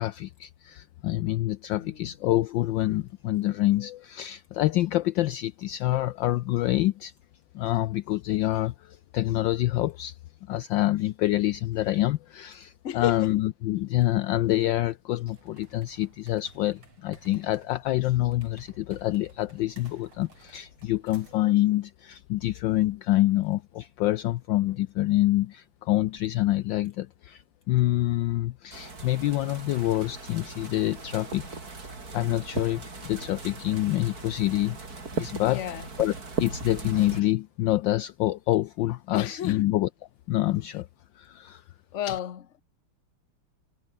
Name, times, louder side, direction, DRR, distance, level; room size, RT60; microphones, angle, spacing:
voice 1, 0.0-7.1 7.5-10.2 10.5-31.5 32.1-34.8 35.1-35.6 36.0-36.1 36.4-39.9 40.3-40.9 41.2-41.6 42.1-42.2, left 15 dB, 75° left, 1.2 m, -26 dB
voice 2, 1.7-2.1 12.8-13.3 35.4-35.9 39.1-39.6 41.9-42.6, left 10 dB, 45° left, 1.1 m, -33 dB
sound 1, 15.2-21.5, right 4 dB, 75° right, 5.4 m, -56 dB
sound 2, 28.7-37.2, right 3 dB, 40° right, 4.2 m, -38 dB
omnidirectional pair, 2.4 m